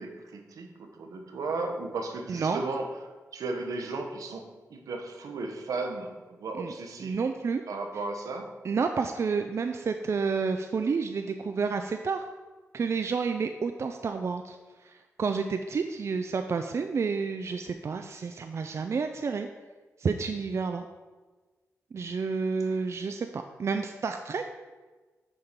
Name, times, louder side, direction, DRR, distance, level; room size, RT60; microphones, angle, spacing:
voice 1, 0.0-2.9 3.3-7.2 7.7-8.5 22.6-22.8, right 3 dB, 80° right, 4 dB, 0.7 m, -35 dB
voice 2, 2.3-2.6 6.6-6.7 7.0-7.6 8.6-12.2 12.7-14.6 14.8-19.5 20.0-20.8 21.9-24.5, right 5 dB, 55° right, 6 dB, 0.4 m, -30 dB
6.6 x 3.7 x 4.4 m, 1.3 s
cardioid pair, 45°, 6 cm